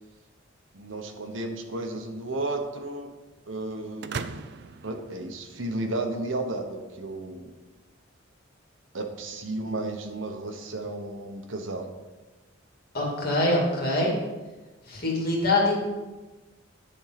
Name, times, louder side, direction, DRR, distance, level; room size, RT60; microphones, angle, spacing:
voice 1, 0.7-3.1 3.5-4.3 4.8-7.5 8.9-11.8, right 2 dB, 80° right, 4 dB, 1.1 m, -33 dB
sound 1, 4.0-6.0, right 5 dB, 60° right, 0.5 m, -38 dB
voice 2, 12.9-14.1 14.8-15.8, left 2 dB, 50° left, -2 dB, 2.5 m, -24 dB
10.5 x 4.5 x 5.8 m, 1.2 s
head